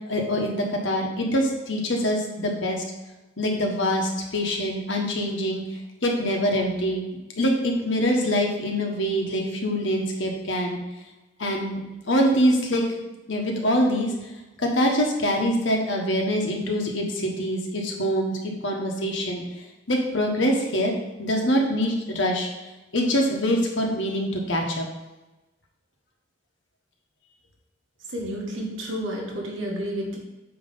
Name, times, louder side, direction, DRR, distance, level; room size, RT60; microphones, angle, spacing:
voice 1, 0.1-2.8 3.4-5.6 6.0-10.8 11.4-12.8 13.3-14.1 14.6-19.4 19.9-20.9 21.2-22.5 22.9-24.9, equal, 65° left, 1 dB, 1.3 m, -24 dB
voice 2, 28.1-30.2, equal, 70° right, -1 dB, 1.7 m, -30 dB
8.8 x 3.2 x 5.4 m, 1.1 s
head